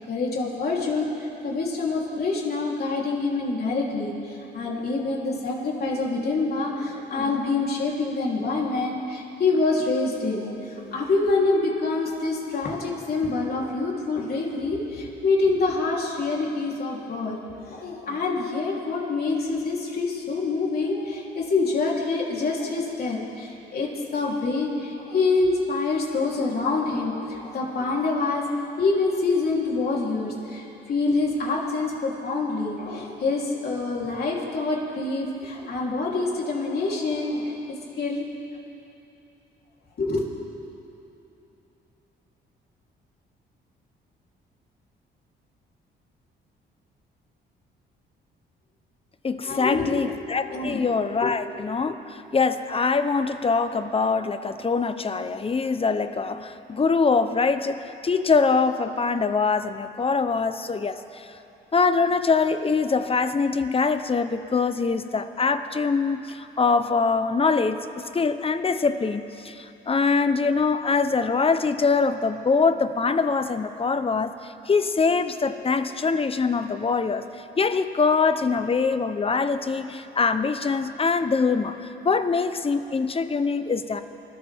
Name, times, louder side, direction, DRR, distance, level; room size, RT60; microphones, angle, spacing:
voice 1, 0.1-17.4 17.7-28.4 28.8-38.2 40.0-40.3 49.4-50.0 50.5-50.8 51.2-51.3, left 3 dB, 50° left, -3 dB, 3.5 m, -26 dB
voice 2, 49.2-61.4 61.7-77.2 77.6-84.0, left 4 dB, 30° left, 10 dB, 0.9 m, -23 dB
28.0 x 13.5 x 3.6 m, 2.9 s
cardioid pair, 90°, 20 cm